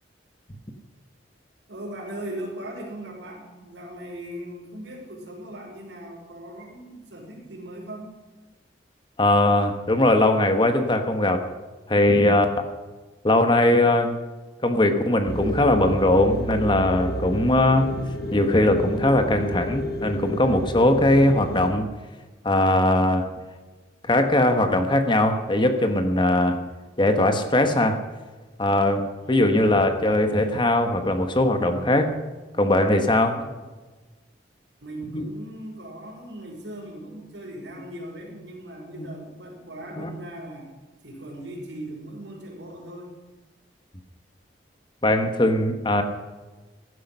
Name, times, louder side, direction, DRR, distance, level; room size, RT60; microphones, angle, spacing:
voice 1, 1.7-8.1 29.2-29.5 33.1-33.6 34.8-40.7 41.0-43.1, right 1 dB, 85° right, -2 dB, 5.7 m, -39 dB
voice 2, 9.2-11.4 11.9-12.5 13.2-14.1 14.6-17.9 18.3-21.9 22.4-23.2 24.1-26.6 27.0-28.0 28.6-32.1 32.6-33.4 35.1-35.2 39.0-39.1 40.0-40.1 45.0-46.0, left 1 dB, 25° left, 7 dB, 1.3 m, -20 dB
sound 1, 15.3-21.7, equal, 60° left, 1.2 m, -31 dB
16.0 x 11.0 x 5.6 m, 1.3 s
head